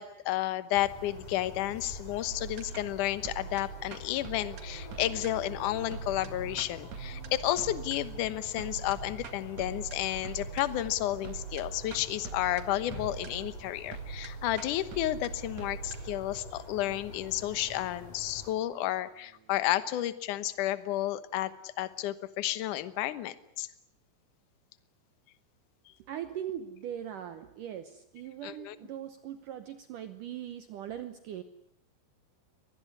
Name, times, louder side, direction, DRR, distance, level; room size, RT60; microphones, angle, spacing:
voice 1, 0.0-23.7 28.4-28.8, left 14 dB, 65° left, 14 dB, 2.1 m, -32 dB
sound 1, 0.7-18.5, left 1 dB, 35° left, 5.5 m, -46 dB
sound 2, 2.3-19.4, right 7 dB, 50° right, 2.5 m, -44 dB
voice 2, 26.0-31.4, right 10 dB, 70° right, 10 dB, 2.1 m, -40 dB
24.0 x 19.5 x 9.7 m, 0.77 s
omnidirectional pair, 4.9 m